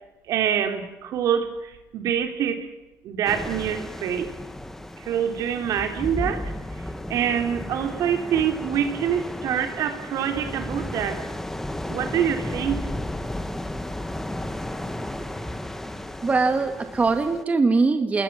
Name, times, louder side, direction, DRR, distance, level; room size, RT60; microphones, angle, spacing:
voice 1, 0.3-2.7 3.0-4.3 5.0-6.5 7.1-11.2 11.9-12.8, right 8 dB, 70° right, 6 dB, 3.3 m, -25 dB
sound 1, 3.3-17.4, left 1 dB, 5° left, 1.9 m, -34 dB
voice 2, 16.2-18.2, right 4 dB, 25° right, 6 dB, 2.1 m, -21 dB
28.5 x 21.5 x 7.6 m, 1.0 s
cardioid pair, 130°, 6 cm